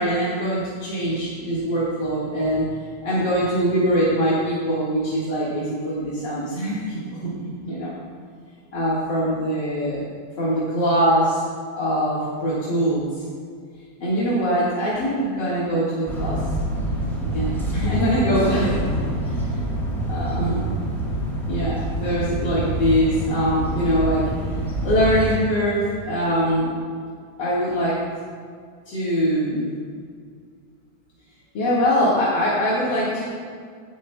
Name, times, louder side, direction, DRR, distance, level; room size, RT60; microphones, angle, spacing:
voice 1, 0.0-2.7 3.0-7.9 8.7-10.0 10.4-11.4 11.7-13.2 14.0-16.4 17.3-18.7 19.2-19.6 20.1-20.6 21.5-24.2 24.8-26.7 27.4-28.0 28.9-29.7 31.5-33.2, equal, 40° left, -9 dB, 1.8 m, -23 dB
sound 1, 16.1-25.4, right 1 dB, ahead, 2.0 m, -26 dB
16.5 x 9.2 x 2.2 m, 2.1 s
omnidirectional pair, 3.6 m